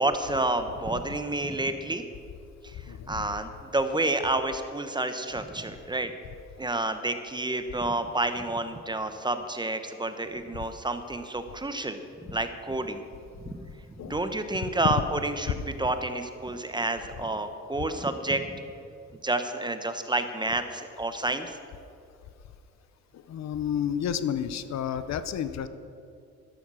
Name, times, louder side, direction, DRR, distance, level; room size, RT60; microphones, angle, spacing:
voice 1, 0.0-2.0 2.6-6.1 6.6-12.0 12.3-13.0 13.4-18.6 19.2-21.6, right 2 dB, 15° right, 8 dB, 1.1 m, -29 dB
voice 2, 23.1-25.7, left 9 dB, 60° left, 12 dB, 0.8 m, -31 dB
13.0 x 12.0 x 6.4 m, 2.5 s
cardioid pair, 90°, 30 cm